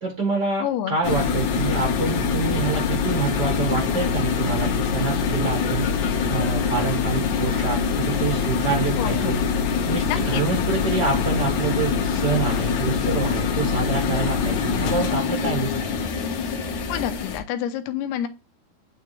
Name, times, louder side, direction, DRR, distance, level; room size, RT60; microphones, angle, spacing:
voice 1, 0.0-9.4 9.9-16.0, right 4 dB, 75° right, 1 dB, 0.9 m, -27 dB
voice 2, 0.6-1.0 9.0-9.4 10.1-10.4 16.9-18.3, left 11 dB, 85° left, 8 dB, 2.7 m, -28 dB
sound 1, 1.0-17.4, left 5 dB, 70° left, 1.8 m, -24 dB
9.2 x 3.3 x 3.3 m, 0.31 s
omnidirectional pair, 4.7 m